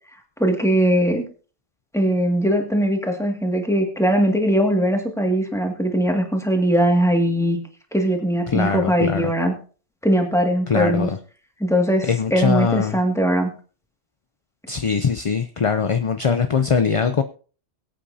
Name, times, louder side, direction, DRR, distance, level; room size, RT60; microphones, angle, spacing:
voice 1, 0.4-1.2 1.9-7.6 7.9-9.5 10.0-11.1 11.6-13.5, equal, 5° left, 2 dB, 2.0 m, -20 dB
voice 2, 8.5-9.3 10.7-11.2 12.1-13.0 14.7-17.2, left 6 dB, 40° left, 8 dB, 0.5 m, -21 dB
23.0 x 8.6 x 2.8 m, 0.39 s
omnidirectional pair, 1.2 m